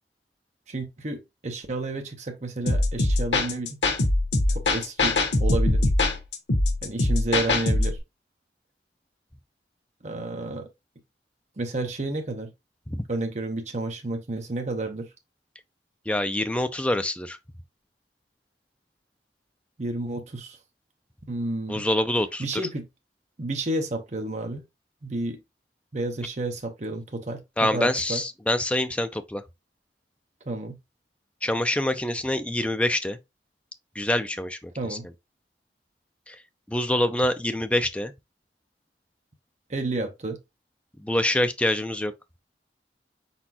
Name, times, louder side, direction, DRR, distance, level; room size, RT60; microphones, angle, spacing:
voice 1, 0.7-3.8 4.5-5.9 6.8-8.0 10.0-10.7 11.6-12.5 13.1-15.1 19.8-20.6 21.3-21.8 22.4-22.9 23.4-24.6 25.0-25.4 25.9-28.2 30.5-30.8 34.8-35.1 39.7-40.4, right 2 dB, 40° right, 0.8 m, -31 dB
sound 1, 2.7-8.0, left 2 dB, 85° left, 1.2 m, -22 dB
voice 2, 16.1-17.4 21.7-22.6 27.6-29.4 31.4-33.2 34.0-35.0 36.3-36.4 36.7-38.1 41.0-42.1, left 1 dB, 5° left, 0.4 m, -25 dB
4.4 x 4.1 x 2.9 m
head